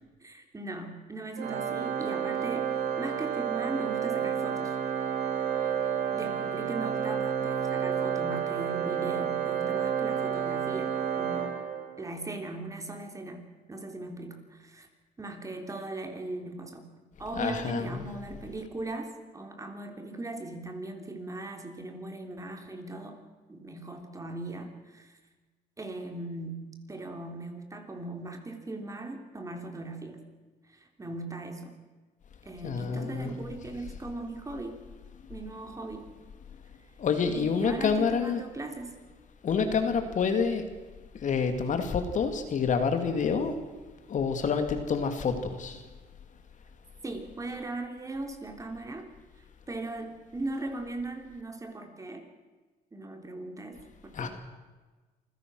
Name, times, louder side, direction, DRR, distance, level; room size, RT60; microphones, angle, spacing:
voice 1, 0.2-4.8 5.4-5.8 6.1-11.5 12.0-14.9 15.2-23.2 23.5-25.2 25.8-30.2 30.6-31.8 32.4-34.8 35.3-36.1 37.3-39.0 47.0-49.1 49.4-52.3 52.9-54.3, right 2 dB, 20° right, 5 dB, 3.4 m, -39 dB
Organ, 1.4-12.2, right 8 dB, 75° right, 3.3 m, -30 dB
voice 2, 17.3-18.1 32.6-33.3 37.0-38.4 39.4-40.6 41.1-43.5 44.1-45.8 54.1-54.3, left 5 dB, 45° left, 7 dB, 2.6 m, -28 dB
27.0 x 16.0 x 6.3 m, 1.3 s
cardioid pair, 110°, 17 cm